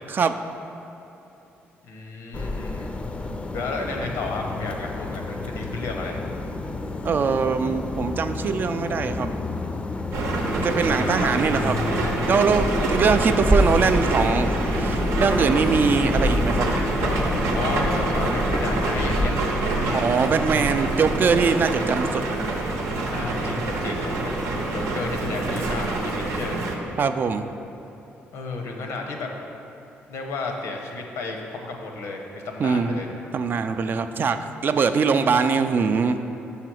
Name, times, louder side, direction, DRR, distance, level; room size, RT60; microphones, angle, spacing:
voice 1, 1.8-2.9 3.5-6.2 10.9-11.3 13.0-13.1 17.5-19.3 19.6-20.1 23.1-26.6 28.3-29.3 30.1-33.1, left 3 dB, 85° left, 2 dB, 0.8 m, -32 dB
sound 1, 2.3-19.3, left 2 dB, 25° left, 0.4 m, -29 dB
voice 2, 7.0-9.3 10.5-11.8 12.3-16.7 19.9-22.2 27.0-27.4 32.6-33.0 33.3-36.3, right 5 dB, 45° right, 9 dB, 0.3 m, -22 dB
sound 2, 10.1-26.8, right 2 dB, 85° right, 0.7 m, -26 dB
sound 3, 13.5-15.6, right 1 dB, 25° right, 0.7 m, -25 dB
5.6 x 4.1 x 6.2 m, 2.9 s
cardioid pair, 80°, 5 cm